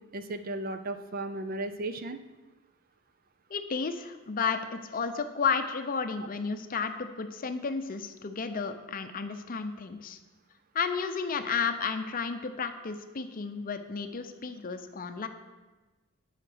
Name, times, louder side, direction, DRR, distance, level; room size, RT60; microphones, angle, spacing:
voice 1, 0.1-2.2, right 2 dB, 40° right, 10 dB, 0.5 m, -35 dB
voice 2, 3.5-10.2 10.7-15.3, left 5 dB, 40° left, 9 dB, 0.6 m, -32 dB
7.9 x 5.8 x 6.2 m, 1.2 s
head